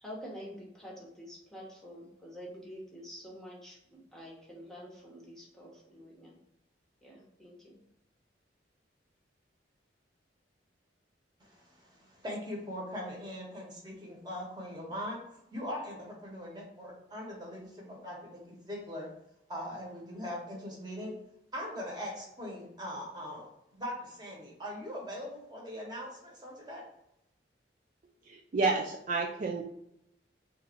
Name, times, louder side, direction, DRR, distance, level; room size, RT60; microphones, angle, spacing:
voice 1, 0.0-6.4 7.0-7.8, equal, ahead, -4 dB, 0.9 m, -47 dB
voice 2, 11.8-15.2 15.5-19.1 19.5-21.1 21.5-26.9, equal, 25° right, -2 dB, 1.2 m, -41 dB
voice 3, 28.2-29.6, right 3 dB, 45° right, 1 dB, 0.3 m, -30 dB
3.9 x 2.6 x 4.3 m, 0.81 s
head